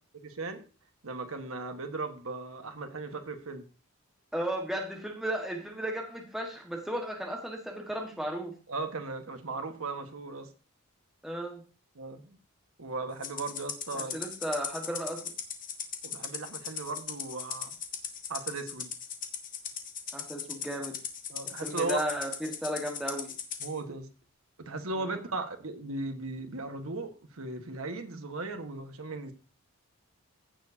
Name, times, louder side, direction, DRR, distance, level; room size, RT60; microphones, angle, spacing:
voice 1, 0.1-0.6 1.0-3.7 8.7-10.5 11.9-12.4 12.8-14.2 16.0-17.7 18.3-18.9 21.3-22.1 23.6-24.1 24.6-29.3, right 3 dB, 75° right, 6 dB, 1.4 m, -37 dB
voice 2, 4.3-8.5 11.2-11.6 13.9-15.2 20.1-21.0 21.6-23.3 25.0-25.1, right 1 dB, ahead, 0 dB, 1.5 m, -34 dB
Rattle (instrument), 13.2-23.7, left 8 dB, 40° left, 1.3 m, -38 dB
15.5 x 7.0 x 2.8 m, 0.35 s
head